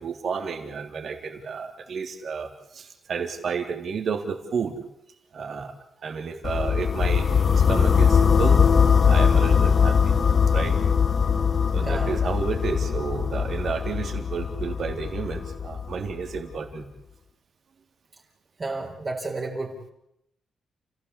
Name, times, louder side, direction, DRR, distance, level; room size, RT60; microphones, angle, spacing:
voice 1, 0.0-4.8 5.3-5.7 6.0-8.7 9.1-10.1 10.5-10.8 11.7-16.9, right 5 dB, 50° right, 5 dB, 3.5 m, -31 dB
sound 1, 6.4-16.4, left 6 dB, 35° left, 1.2 m, -21 dB
voice 2, 11.7-12.1 18.6-19.9, right 3 dB, 25° right, -2 dB, 4.1 m, -32 dB
30.0 x 16.5 x 8.4 m, 0.80 s
wide cardioid pair, 160°, 0 cm